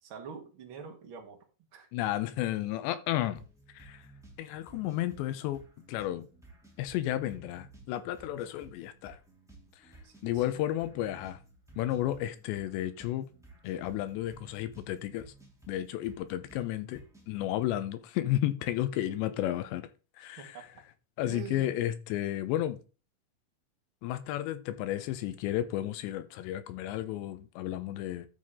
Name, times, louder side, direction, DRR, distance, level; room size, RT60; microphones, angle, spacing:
voice 1, 0.0-1.4 1.7-1.9 10.0-10.6 20.4-20.8 21.2-21.7, right 7 dB, 55° right, 1.4 m, -45 dB
voice 2, 1.9-3.4 3.7-4.0 4.4-5.6 5.9-6.3 6.8-9.2 10.2-11.4 11.8-13.3 13.6-15.3 15.7-17.0 17.3-19.9 20.2-20.7 21.2-22.8 24.0-28.3, left 13 dB, 90° left, 3.1 m, -32 dB
sound 1, 3.3-17.4, right 2 dB, ahead, 1.3 m, -55 dB
13.0 x 6.0 x 3.7 m
omnidirectional pair, 4.9 m